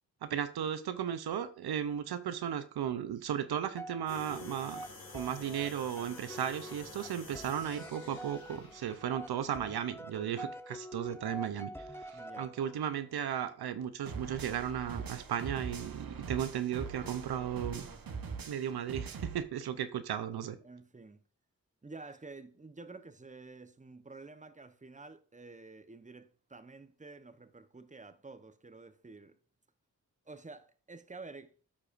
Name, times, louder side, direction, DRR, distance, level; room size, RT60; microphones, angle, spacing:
voice 1, 0.2-4.8 5.1-17.9 18.5-20.6, right 9 dB, 85° right, 0.7 m, -35 dB
sound 1, 3.8-13.0, right 1 dB, 5° left, 0.7 m, -47 dB
sound 2, 4.1-9.9, left 3 dB, 70° left, 3.4 m, -51 dB
voice 2, 12.1-12.5 20.6-21.2 21.8-29.4 30.3-31.5, right 3 dB, 20° right, 1.0 m, -50 dB
sound 3, 14.1-19.4, right 5 dB, 65° right, 1.2 m, -42 dB
13.5 x 4.8 x 2.6 m
cardioid pair, 40°, 37 cm